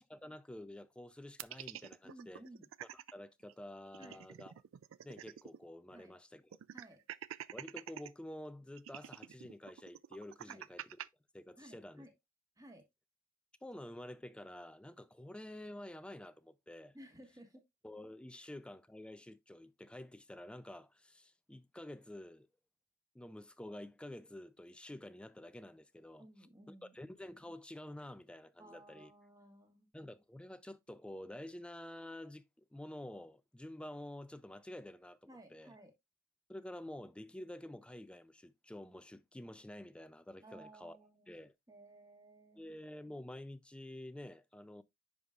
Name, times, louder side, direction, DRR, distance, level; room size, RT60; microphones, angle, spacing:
voice 1, 0.0-2.4 2.9-4.5 5.0-6.6 7.5-10.9 11.3-12.1 13.6-17.0 17.8-22.5 23.1-26.3 26.7-29.1 29.9-35.7 36.5-41.0 41.3-41.5 42.6-44.8, left 1 dB, 5° left, 0.3 m, -49 dB
sound 1, 1.4-3.1 3.5-3.6 3.9-5.6 5.9-6.0 6.5-8.1 8.8-11.1, right 10 dB, 75° right, 0.4 m, -48 dB
voice 2, 2.0-2.7 4.0-4.2 5.9-6.1 6.7-7.0 10.5-10.6 11.6-12.1 12.6-12.9 16.9-17.6 26.2-27.0 28.6-29.9 35.3-35.9 40.4-41.3 41.7-42.7, right 1 dB, 15° right, 1.5 m, -57 dB
10.0 x 4.8 x 2.4 m
head